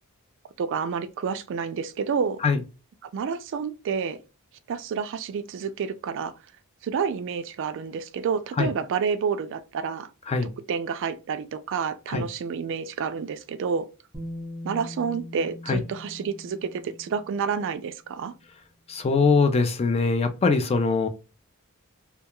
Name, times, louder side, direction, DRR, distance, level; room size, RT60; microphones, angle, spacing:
voice 1, 0.6-2.4 3.1-4.2 4.7-6.3 6.8-10.1 10.7-13.9 14.6-18.3, right 6 dB, 60° right, 0.3 m, -29 dB
Bass guitar, 14.1-18.1 19.2-19.3, left 1 dB, 5° right, 0.9 m, -41 dB
voice 2, 18.9-21.1, left 4 dB, 30° left, 0.4 m, -22 dB
2.3 x 2.2 x 2.9 m
head